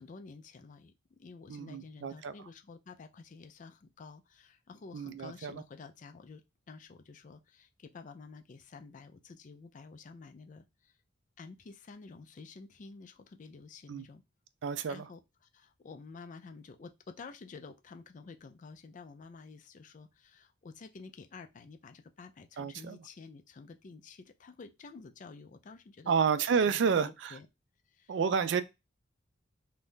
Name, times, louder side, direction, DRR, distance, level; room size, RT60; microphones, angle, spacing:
voice 1, 0.0-11.0 11.4-14.2 14.9-15.2 15.5-26.2 26.7-27.5 27.9-28.2, left 4 dB, 40° left, 0.4 m, -50 dB
voice 2, 1.5-2.3 4.9-5.6 13.9-14.1 14.6-15.1 22.6-23.0 26.1-27.4 28.1-28.6, right 6 dB, 60° right, 0.3 m, -30 dB
2.6 x 2.3 x 3.5 m
head